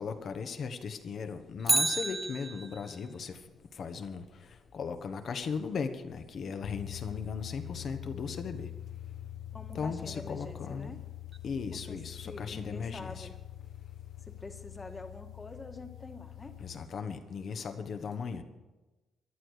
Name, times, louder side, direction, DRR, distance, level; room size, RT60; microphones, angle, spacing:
voice 1, 0.0-3.4 3.8-4.2 4.7-8.7 9.7-10.9 11.4-13.3 16.6-18.4, left 5 dB, 55° left, 8 dB, 1.3 m, -37 dB
Bicycle, 1.6-3.0 11.3-11.4, right 3 dB, 20° right, 0.6 m, -30 dB
sound 1, 6.6-16.9, left 13 dB, 75° left, 1.4 m, -45 dB
voice 2, 9.5-11.0 11.7-12.0 12.2-13.3 14.3-16.6, left 2 dB, 25° left, 5 dB, 1.8 m, -46 dB
14.5 x 11.5 x 6.6 m, 1.2 s
cardioid pair, 90°, 0 cm